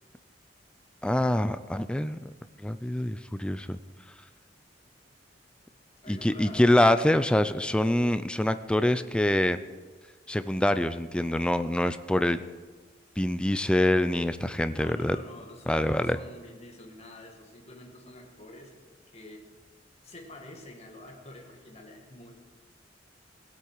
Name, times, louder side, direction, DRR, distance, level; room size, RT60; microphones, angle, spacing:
voice 1, 1.0-2.3 2.6-3.8 6.1-9.6 10.3-12.4 13.2-15.2 15.7-16.2, left 1 dB, 5° left, 12 dB, 0.4 m, -25 dB
voice 2, 6.0-6.7 14.7-18.7 19.1-19.5 20.0-22.3, left 1 dB, 35° left, 1 dB, 1.9 m, -47 dB
17.0 x 8.4 x 4.7 m, 1.4 s
head